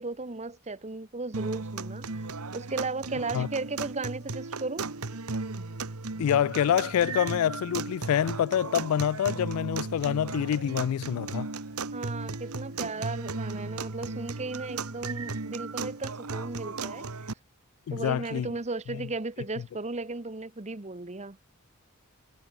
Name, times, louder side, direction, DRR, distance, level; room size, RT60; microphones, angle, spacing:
voice 1, 0.0-4.9 11.9-17.3 17.9-21.4, right 3 dB, 30° right, 1.1 m, -36 dB
sound 1, 1.3-17.3, right 3 dB, 90° right, 1.5 m, -36 dB
voice 2, 6.2-11.5 17.9-18.5 18.9-19.0, left 9 dB, 75° left, 0.3 m, -26 dB
head